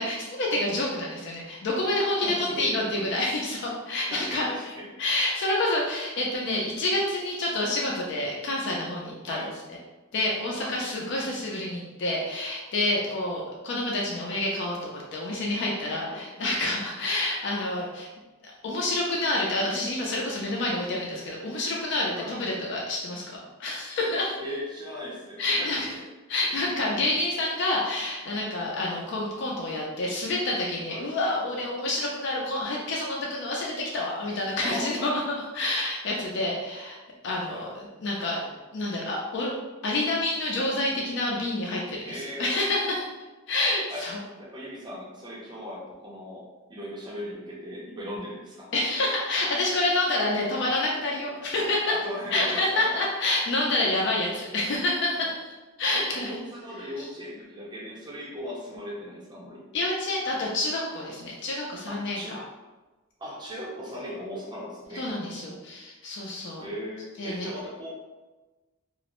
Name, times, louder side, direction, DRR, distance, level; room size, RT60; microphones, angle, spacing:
voice 1, 0.0-4.4 5.0-9.4 10.1-18.1 18.4-23.2 23.6-24.4 25.4-26.0 26.3-35.2 35.5-37.0 37.2-39.5 39.8-43.1 43.5-44.2 48.7-51.9 52.3-56.4 56.8-57.1 59.7-62.4 64.9-66.6 67.2-67.5, left 2 dB, 55° left, -3 dB, 0.4 m, -28 dB
voice 2, 2.2-3.1 4.1-4.9 9.2-9.5 10.6-10.8 16.0-16.3 22.2-22.3 24.4-26.1 28.6-28.8 30.9-31.0 34.6-35.1 37.5-37.7 42.1-42.6 43.9-44.0 44.4-46.4 46.7-48.7 51.9-53.0 55.2-55.3 55.9-59.6 61.9-62.4 63.2-65.0 66.6-67.9, equal, 20° right, -5 dB, 0.5 m, -38 dB
2.4 x 2.0 x 2.9 m, 1.2 s
head